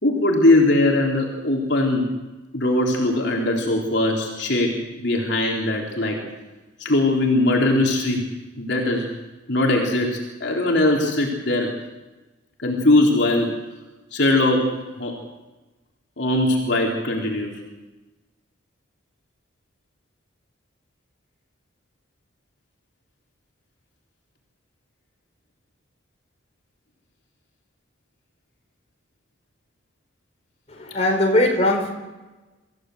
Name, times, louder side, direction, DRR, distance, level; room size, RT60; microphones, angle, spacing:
voice 1, 0.0-2.1 2.5-6.2 6.8-8.2 8.6-9.1 9.5-11.8 12.6-13.6 14.1-15.2 16.2-17.6, left 2 dB, 60° left, -1 dB, 3.8 m, -20 dB
voice 2, 30.7-31.9, left 1 dB, 30° left, 1 dB, 4.6 m, -20 dB
26.0 x 16.0 x 8.0 m, 1.1 s
head